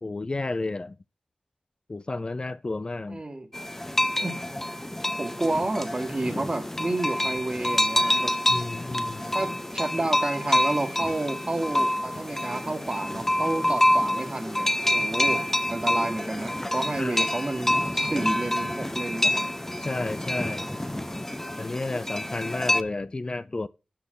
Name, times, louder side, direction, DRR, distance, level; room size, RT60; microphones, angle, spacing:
voice 1, 0.0-1.0 1.9-3.2 8.5-9.3 17.0-17.3 19.8-20.7 21.6-23.7, left 2 dB, 35° left, 0.4 m, -32 dB
voice 2, 3.1-3.5 4.2-4.3 5.2-8.3 9.3-15.4 15.7-19.5, right 2 dB, 35° right, 1.7 m, -30 dB
sound 1, 3.5-22.8, left 1 dB, 15° left, 0.8 m, -27 dB
12.0 x 6.2 x 3.8 m
wide cardioid pair, 75°, 2 cm